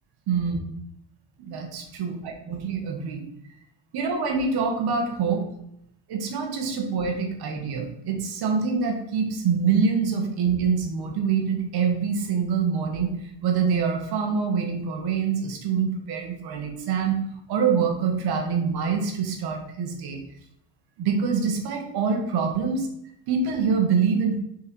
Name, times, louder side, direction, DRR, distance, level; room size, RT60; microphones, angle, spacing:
voice 1, 0.3-0.6 1.4-3.2 3.9-5.4 6.1-13.1 13.4-17.1 17.5-20.2 21.0-22.9 23.3-24.4, right 6 dB, 60° right, 3 dB, 1.7 m, -25 dB
7.0 x 4.7 x 4.4 m, 0.77 s
cardioid pair, 170°, 43 cm